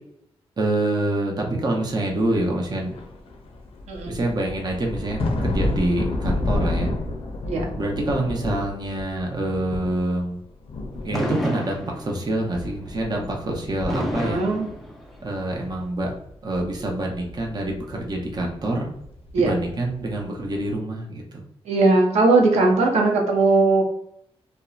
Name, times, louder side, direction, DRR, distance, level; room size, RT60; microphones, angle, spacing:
voice 1, 0.6-2.9 4.1-6.9 7.8-10.4 11.0-14.6 15.2-16.2 16.4-18.9 19.4-21.4, right 1 dB, 40° right, 0 dB, 0.6 m, -26 dB
sound 1, 2.1-2.2 2.6-10.3 10.6-12.2 12.5-15.0 15.4-20.2 20.4-20.7, left 2 dB, 60° left, 0.5 m, -31 dB
voice 2, 3.9-4.2 7.4-7.7 14.2-14.7 19.3-19.5 21.7-23.8, right 3 dB, 85° right, 1 dB, 0.6 m, -19 dB
Fireworks, 11.1-12.4 13.9-15.4, equal, ahead, 0.6 m, -29 dB
2.7 x 2.0 x 2.3 m, 0.75 s
cardioid pair, 65°, 11 cm